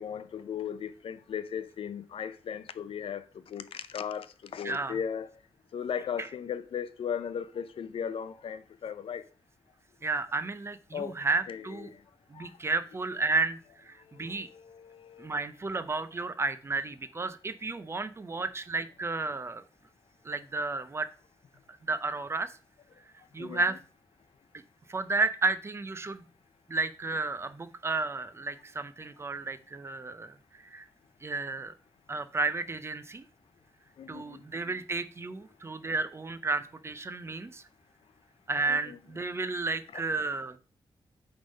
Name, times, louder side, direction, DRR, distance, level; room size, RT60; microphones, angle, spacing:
voice 1, 0.0-5.3 5.7-9.2 10.9-11.2 11.5-12.0 12.3-12.5 14.1-15.4 23.4-23.6 34.0-34.4 38.7-39.0 39.9-40.0, left 8 dB, 90° left, 0.6 m, -37 dB
voice 2, 4.6-5.0 6.2-6.3 10.0-11.9 12.3-14.5 15.2-19.6 20.2-21.1 21.7-22.5 23.3-23.8 24.9-26.2 26.7-30.8 31.2-31.7 32.1-33.2 34.1-37.6 38.5-40.6, right 3 dB, 30° right, 0.5 m, -32 dB
8.8 x 3.6 x 5.2 m
wide cardioid pair, 155°, 9 cm